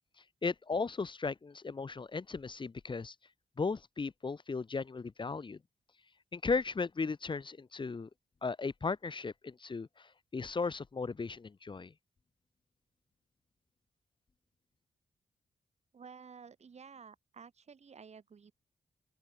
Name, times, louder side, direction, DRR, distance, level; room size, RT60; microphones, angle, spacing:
voice 1, 0.4-3.1 3.6-5.6 6.3-8.1 8.4-11.9, left 4 dB, 35° left, 1.0 m, -36 dB
voice 2, 15.9-18.5, right 6 dB, 55° right, 1.6 m, -53 dB
open air
cardioid pair, 65°, 14 cm